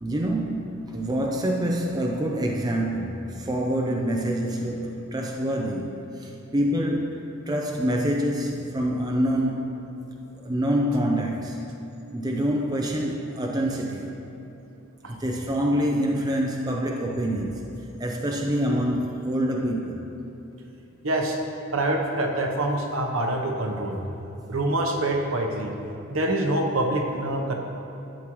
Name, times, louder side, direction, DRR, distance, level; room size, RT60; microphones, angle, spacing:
voice 1, 0.0-9.8 10.4-11.7 12.1-14.2 15.1-17.7 18.0-20.1, equal, 20° right, 0 dB, 0.5 m, -26 dB
voice 2, 21.0-21.4 21.7-24.0 24.5-25.7 26.1-27.5, right 1 dB, 65° right, 2 dB, 0.9 m, -25 dB
11.5 x 7.5 x 3.1 m, 2.9 s
head